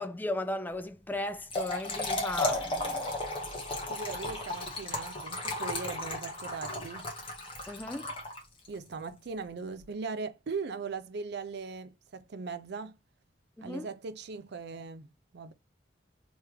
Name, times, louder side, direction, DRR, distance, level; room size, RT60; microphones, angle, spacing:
voice 1, 0.0-3.1 7.7-8.1 13.6-13.9, left 1 dB, 10° left, 0.3 m, -36 dB
Trickle dribble / Fill (with liquid), 1.3-8.7, left 2 dB, 30° left, 1.4 m, -34 dB
voice 2, 3.9-7.1 8.7-13.0 13.6-15.5, right 4 dB, 65° right, 0.5 m, -39 dB
3.4 x 3.2 x 3.4 m
head